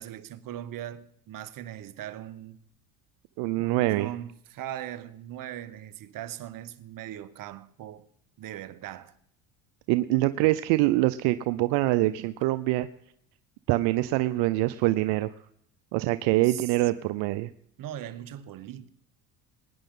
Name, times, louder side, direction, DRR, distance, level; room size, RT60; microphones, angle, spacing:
voice 1, 0.0-2.6 3.6-8.1 8.4-9.1 16.4-16.7 17.8-18.9, right 11 dB, 55° right, 1.1 m, -39 dB
voice 2, 3.4-4.1 9.9-12.9 13.7-15.3 15.9-17.5, right 18 dB, 75° right, 0.7 m, -24 dB
22.0 x 10.0 x 3.8 m
supercardioid pair, 95°, 40 cm